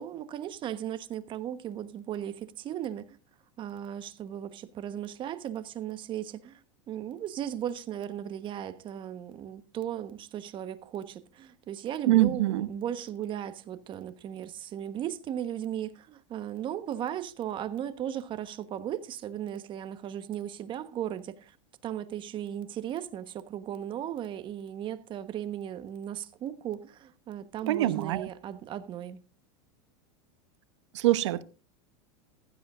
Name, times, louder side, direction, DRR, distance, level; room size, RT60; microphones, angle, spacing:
voice 1, 0.0-3.1 3.6-6.6 6.9-21.5 21.8-29.2, right 10 dB, 35° right, 1.2 m, -36 dB
voice 2, 12.1-12.7 27.6-28.3 30.9-31.4, right 15 dB, 80° right, 1.0 m, -24 dB
15.5 x 13.0 x 2.5 m
supercardioid pair, 125°, 15 cm